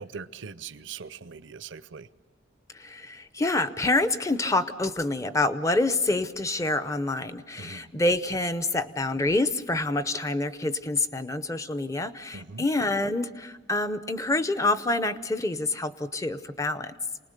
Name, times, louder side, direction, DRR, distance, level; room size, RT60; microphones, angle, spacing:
voice 1, 0.0-2.1 7.6-7.9 12.3-12.6, right 5 dB, 65° right, 15 dB, 0.6 m, -41 dB
voice 2, 2.7-16.9, left 2 dB, 15° left, 12 dB, 0.6 m, -27 dB
28.0 x 20.0 x 6.6 m, 1.3 s
head